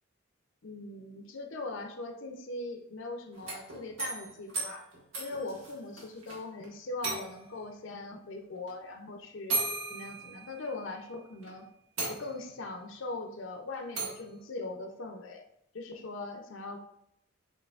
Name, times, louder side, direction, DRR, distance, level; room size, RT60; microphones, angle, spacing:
voice 1, 0.6-4.9 5.2-9.6 9.9-11.7 12.1-15.4 15.7-16.8, left 2 dB, 65° left, 4 dB, 0.6 m, -40 dB
sound 1, 3.3-6.4 6.6-6.7 7.0-7.6 8.7-8.8 9.5-10.9 11.4-11.5 12.0-12.7 14.0-14.3, right 3 dB, 65° right, 1.5 m, -36 dB
7.5 x 2.8 x 2.4 m, 0.76 s
head